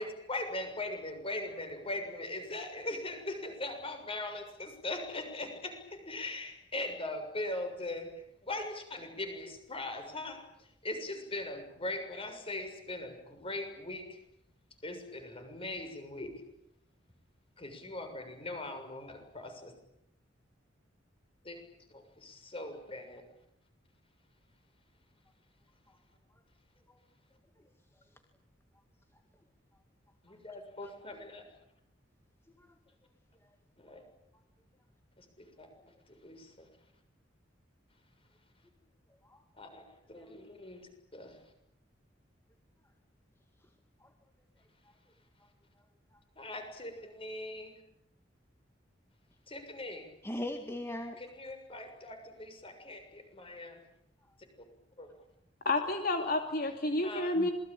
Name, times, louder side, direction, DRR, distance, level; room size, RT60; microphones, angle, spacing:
voice 1, 0.0-14.2 14.8-16.3 17.6-19.7 21.4-21.6 21.9-23.2 30.2-31.5 33.8-34.0 35.2-35.7 36.1-36.7 39.6-41.4 46.3-47.8 49.5-50.1 51.2-53.8 55.0-55.1 57.0-57.3, left 2 dB, 30° left, 6 dB, 6.8 m, -40 dB
voice 2, 50.2-51.2 57.4-57.5, left 1 dB, 15° left, 5 dB, 2.1 m, -40 dB
voice 3, 55.6-57.5, left 2 dB, 50° left, 5 dB, 2.7 m, -30 dB
27.5 x 22.0 x 9.0 m, 0.81 s
head